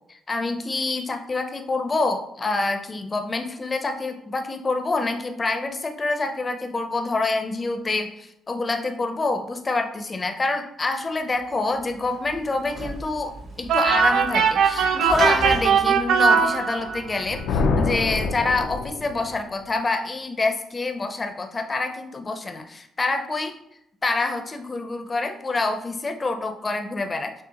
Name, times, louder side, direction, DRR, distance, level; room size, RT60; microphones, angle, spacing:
voice 1, 0.1-23.6 24.0-27.3, left 3 dB, 30° left, 6 dB, 0.5 m, -26 dB
Sliding door / Slam, 11.4-17.3, right 1 dB, 55° right, 1.0 m, -36 dB
sound 1, 13.7-17.2, right 6 dB, 80° right, 0.4 m, -20 dB
Thunder, 17.0-19.4, left 3 dB, 85° left, 0.5 m, -26 dB
6.2 x 2.4 x 2.9 m, 0.77 s
cardioid pair, 90°, 0 cm